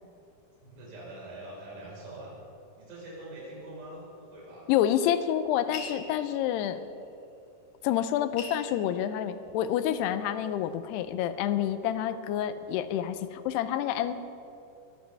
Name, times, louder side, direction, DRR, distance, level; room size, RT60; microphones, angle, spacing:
voice 1, 0.6-2.4 2.8-4.7, right 1 dB, 85° right, -5 dB, 6.8 m, -44 dB
voice 2, 4.7-6.8 7.8-14.1, left 10 dB, 85° left, 11 dB, 2.6 m, -28 dB
sound 1, 5.7-6.7 7.8-7.9 8.1-9.8 10.2-10.9, left 4 dB, 60° left, 2.2 m, -43 dB
22.0 x 14.5 x 3.4 m, 2.7 s
omnidirectional pair, 4.8 m